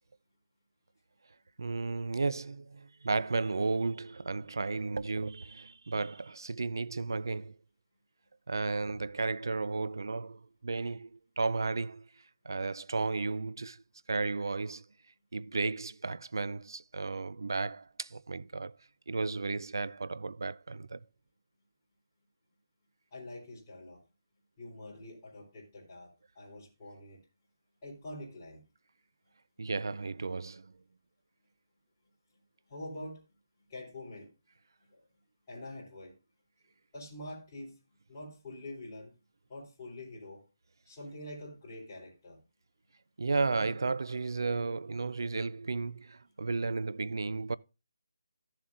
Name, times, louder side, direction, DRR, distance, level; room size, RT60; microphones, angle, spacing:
voice 1, 1.6-7.6 8.5-12.1 12.4-13.8 14.1-14.8 15.3-18.8 19.1-21.0 29.6-30.7 43.2-47.6, right 3 dB, 80° right, 0.4 m, -33 dB
voice 2, 23.1-24.0 24.6-26.1 26.4-27.2 27.8-28.6 32.7-33.2 33.7-34.3 34.9-35.0 35.5-36.1 36.9-37.8 38.1-39.1 39.5-40.4 40.9-42.4, left 1 dB, 15° left, 3.8 m, -45 dB
13.5 x 7.3 x 2.5 m
hypercardioid pair, 175°, 2 cm